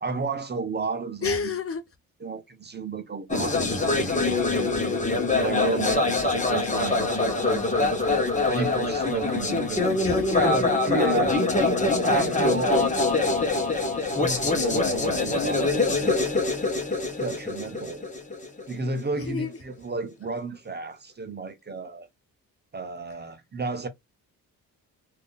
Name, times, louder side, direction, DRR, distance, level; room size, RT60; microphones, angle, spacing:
voice 1, 0.0-1.5 2.2-4.8 5.4-7.4 8.5-9.9 10.3-11.4 12.0-12.9 14.0-16.2 17.2-18.1 18.7-22.1 22.7-23.9, right 4 dB, 25° right, 0.7 m, -32 dB
voice 2, 1.2-1.8 10.0-10.5 19.2-19.5, left 5 dB, 35° left, 0.6 m, -30 dB
sound 1, 3.3-19.2, left 3 dB, 20° left, 1.1 m, -24 dB
3.4 x 2.6 x 2.3 m
cardioid pair, 85°, 38 cm